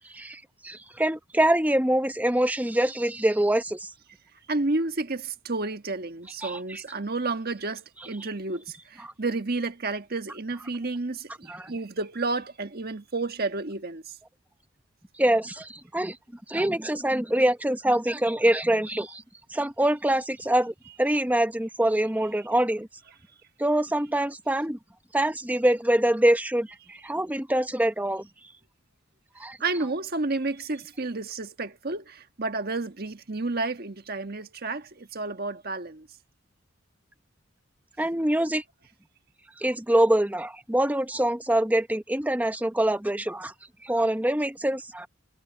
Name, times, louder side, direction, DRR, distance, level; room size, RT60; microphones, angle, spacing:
voice 1, 0.1-3.9 6.4-6.8 9.0-9.1 11.5-11.7 15.2-16.2 16.5-19.2 19.5-22.9 23.6-24.8 25.1-28.3 29.4-29.6 38.0-38.6 39.6-43.5 43.8-45.1, right 1 dB, 10° right, 0.9 m, -25 dB
voice 2, 4.5-14.0 29.6-36.1, right 3 dB, 50° right, 1.4 m, -31 dB
head